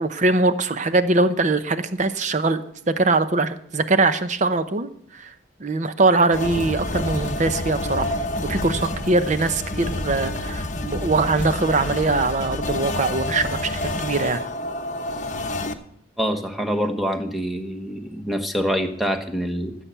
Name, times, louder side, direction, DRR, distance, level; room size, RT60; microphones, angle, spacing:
voice 1, 0.0-5.3 5.6-14.4, right 3 dB, 40° right, 11 dB, 0.7 m, -22 dB
sound 1, 6.3-15.7, left 1 dB, 40° left, 0.9 m, -28 dB
voice 2, 16.2-19.7, equal, ahead, 4 dB, 1.0 m, -25 dB
14.5 x 7.4 x 6.8 m, 0.67 s
head